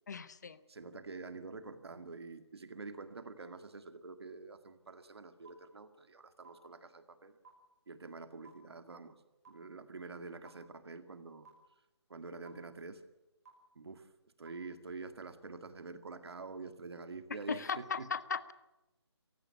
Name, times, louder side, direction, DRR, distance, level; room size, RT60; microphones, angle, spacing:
voice 1, 0.1-0.6 17.5-18.5, left 6 dB, 40° left, 16 dB, 0.8 m, -37 dB
voice 2, 0.7-7.3 7.9-9.2 9.5-11.5 12.1-13.0 13.8-14.1 14.4-18.1, right 4 dB, 65° right, 9 dB, 2.0 m, -47 dB
sound 1, 5.4-5.5 6.4-6.5 7.4-7.5 8.4-8.5 9.4-9.5 10.4-10.5 11.4-11.5 12.4-12.5 13.4-13.5 14.4-14.5, right 5 dB, 35° right, 5.6 m, -54 dB
18.0 x 16.0 x 9.6 m, 1.0 s
hypercardioid pair, 170°, 15 cm